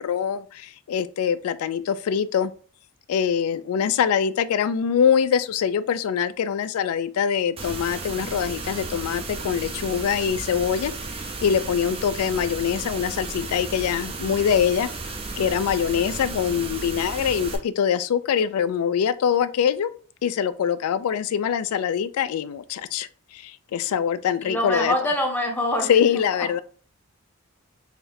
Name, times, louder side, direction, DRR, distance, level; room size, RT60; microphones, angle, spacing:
voice 1, 0.0-2.5 3.1-14.9 15.4-19.9 20.2-24.9 25.9-26.6, left 8 dB, 80° left, 0.3 m, -24 dB
sound 1, 7.6-17.6, right 3 dB, 25° right, 0.5 m, -34 dB
voice 2, 24.4-25.9, left 1 dB, 10° left, 0.7 m, -24 dB
3.6 x 3.3 x 2.6 m
head